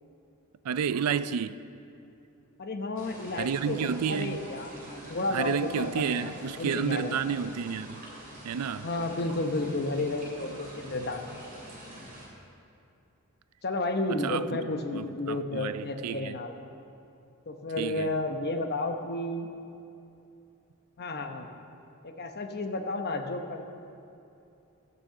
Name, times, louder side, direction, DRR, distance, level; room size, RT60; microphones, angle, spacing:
voice 1, 0.6-1.6 3.4-4.4 5.3-8.0 8.4-8.9 14.1-14.6 14.9-16.4 17.8-18.1, right 7 dB, 80° right, 0.4 m, -31 dB
voice 2, 2.6-3.8 4.1-7.3 8.8-11.3 13.6-16.5 17.5-19.5 21.0-21.5 22.0-23.6, left 2 dB, 45° left, 0.9 m, -32 dB
sound 1, 3.0-12.3, right 1 dB, 40° right, 3.1 m, -46 dB
14.0 x 6.1 x 7.7 m
head